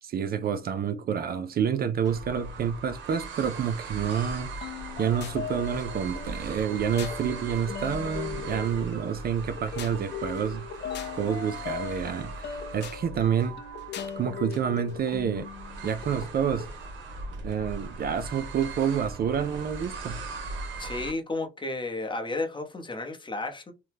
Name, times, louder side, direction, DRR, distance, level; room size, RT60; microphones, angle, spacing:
voice 1, 0.0-4.5 5.0-10.6 11.1-13.6 14.2-15.5 15.8-16.7 17.4-20.2, right 8 dB, 50° right, 0.4 m, -28 dB
sound 1, 2.0-21.1, right 3 dB, 70° right, 0.9 m, -39 dB
sound 2, 4.6-16.8, left 8 dB, 60° left, 0.6 m, -39 dB
voice 2, 20.8-23.7, left 2 dB, 25° left, 0.7 m, -32 dB
2.9 x 2.1 x 3.3 m
cardioid pair, 90°, 20 cm